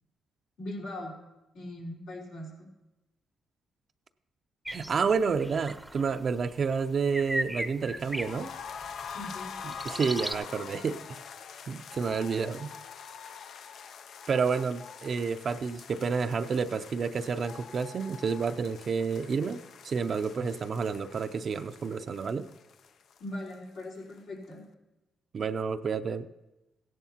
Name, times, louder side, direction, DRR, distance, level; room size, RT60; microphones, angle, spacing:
voice 1, 0.6-1.1 1.5-2.7 9.1-9.6 23.2-24.6, left 1 dB, 85° left, -4 dB, 4.0 m, -40 dB
sound 1, 4.6-10.3, right 1 dB, 5° right, 0.7 m, -38 dB
voice 2, 4.7-8.5 9.6-11.0 11.7-12.7 14.3-22.5 25.3-26.3, right 5 dB, 50° right, 9 dB, 0.5 m, -30 dB
sound 2, 8.0-23.8 24.1-24.2 24.5-24.6, left 7 dB, 70° left, 0.4 m, -45 dB
16.5 x 11.0 x 2.9 m, 1.0 s
cardioid pair, 85°, 0 cm